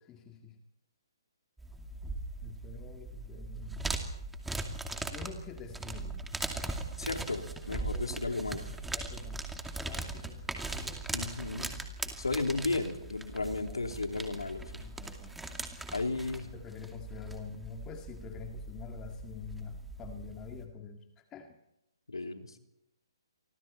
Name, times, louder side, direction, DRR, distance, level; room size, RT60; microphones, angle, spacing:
voice 1, 0.1-0.6 2.4-3.9 5.0-6.3 7.7-8.4 8.9-9.5 9.9-11.1 13.6-13.8 14.8-15.4 16.3-21.6, left 6 dB, 20° left, 4 dB, 2.1 m, -46 dB
sound 1, 1.6-20.6, right 2 dB, 5° right, 2.4 m, -40 dB
voice 2, 7.0-8.6 11.1-11.7 12.2-14.8 15.9-16.5 22.1-22.6, left 3 dB, 85° left, 5 dB, 3.4 m, -34 dB
30.0 x 25.0 x 4.4 m, 0.84 s
figure-of-eight pair, 135°, 3 cm